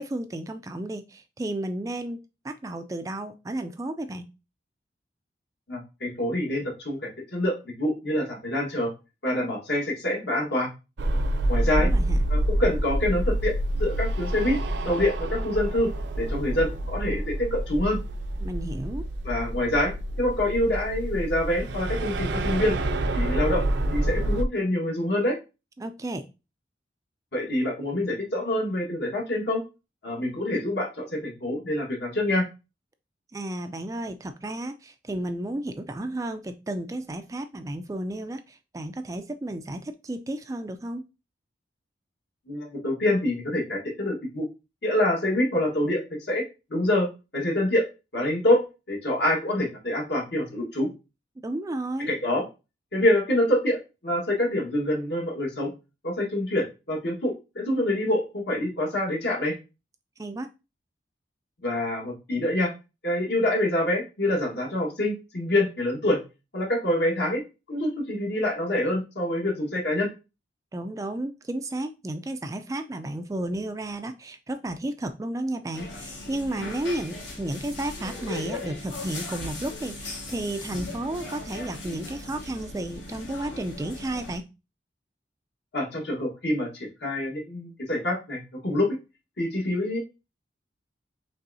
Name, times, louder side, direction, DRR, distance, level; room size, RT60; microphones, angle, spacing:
voice 1, 0.0-2.2 2.4-4.2 11.7-12.2 18.4-19.1 25.8-26.3 33.3-41.1 51.4-52.1 60.2-60.5 70.7-84.4, right 1 dB, 20° right, 8 dB, 0.3 m, -33 dB
voice 2, 5.7-8.9 9.2-10.7 11.5-11.9 12.3-13.5 13.8-14.6 14.8-15.9 16.2-18.0 19.2-19.9 20.2-22.8 23.1-23.6 23.9-25.4 27.3-29.6 30.0-32.4 42.5-44.5 44.8-46.0 46.3-46.4 46.7-47.1 47.3-47.8 48.1-50.9 52.1-52.4 52.9-53.8 54.0-55.7 56.0-59.5 61.6-62.7 63.0-66.2 66.5-67.4 67.7-70.1 85.7-88.9 89.4-90.0, left 1 dB, 65° left, -1 dB, 1.5 m, -26 dB
sound 1, 11.0-24.4, right 1 dB, 70° right, 0.5 m, -27 dB
sound 2, 75.7-84.4, left 2 dB, 80° left, 2.3 m, -38 dB
5.4 x 3.4 x 2.7 m, 0.29 s
head